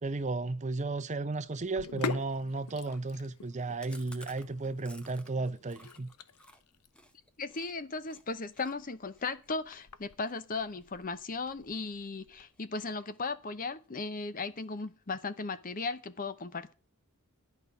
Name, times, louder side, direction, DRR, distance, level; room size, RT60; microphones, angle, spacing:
voice 1, 0.0-6.1, right 3 dB, 30° right, 0.6 m, -34 dB
Sink (filling or washing), 1.6-12.5, left 5 dB, 85° left, 0.8 m, -45 dB
Chewing mastication, 3.8-7.7 8.0-8.2 8.5-11.5 11.9-12.3 12.5-13.4 13.7-13.8 14.1-14.2 14.5-15.1, left 1 dB, 5° left, 0.9 m, -56 dB
voice 2, 7.4-16.7, left 3 dB, 40° left, 0.8 m, -37 dB
11.0 x 5.4 x 8.3 m
head